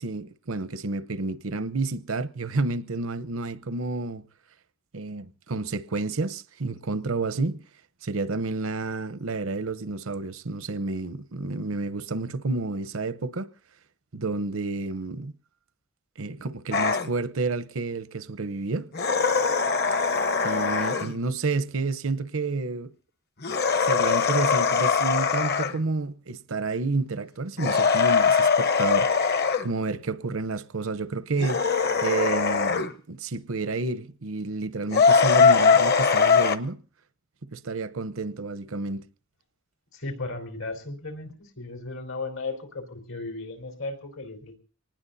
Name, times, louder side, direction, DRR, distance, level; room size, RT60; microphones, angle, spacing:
voice 1, 0.0-4.2 4.9-7.6 8.0-13.5 14.1-15.3 16.2-18.9 20.4-22.9 23.8-31.6 32.0-36.8 37.4-39.0, right 3 dB, 90° right, 0.9 m, -30 dB
sound 1, 16.7-17.1 18.9-21.2 23.4-25.8 27.6-29.7 31.4-32.9 34.9-36.6, left 5 dB, 50° left, 1.0 m, -21 dB
voice 2, 39.9-44.6, left 3 dB, 80° left, 4.3 m, -35 dB
25.5 x 19.5 x 2.7 m
head